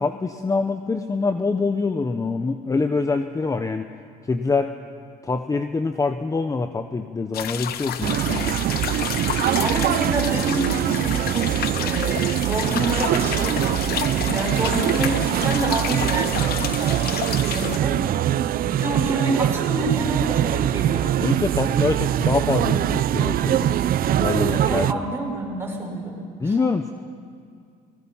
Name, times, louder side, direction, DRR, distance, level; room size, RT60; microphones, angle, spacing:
voice 1, 0.0-3.9 4.3-4.7 5.2-8.6 21.2-23.8 24.1-25.0 26.4-26.9, left 4 dB, 20° left, 7 dB, 0.9 m, -25 dB
sound 1, 7.3-17.8, left 10 dB, 65° left, 1.1 m, -30 dB
sound 2, 8.0-24.9, right 12 dB, 60° right, 0.6 m, -23 dB
voice 2, 9.6-11.5 11.8-21.1 24.0-26.2 26.4-26.5, right 2 dB, 15° right, -1 dB, 6.1 m, -28 dB
28.0 x 20.0 x 5.7 m, 2.3 s
cardioid pair, 110°, 17 cm